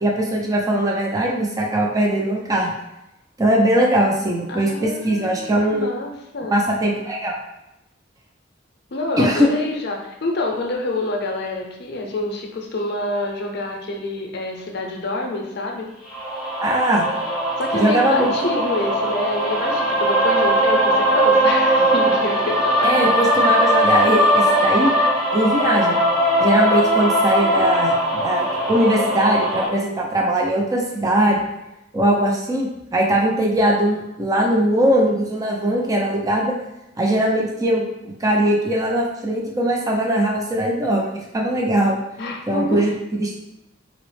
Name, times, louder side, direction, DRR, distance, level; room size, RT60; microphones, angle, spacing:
voice 1, 0.0-2.7 3.4-5.9 6.5-7.3 9.2-9.5 16.6-17.0 17.7-18.3 22.8-24.9 25.3-26.0 26.4-31.4 31.9-36.5 37.0-42.0 42.5-43.4, right 1 dB, 20° right, -1 dB, 0.4 m, -20 dB
voice 2, 4.5-6.6 8.9-15.9 17.6-22.9 42.2-42.8, left 2 dB, 60° left, 1 dB, 0.6 m, -27 dB
sound 1, 16.1-29.7, right 1 dB, 5° right, 0.8 m, -19 dB
4.0 x 2.0 x 3.1 m, 0.89 s
head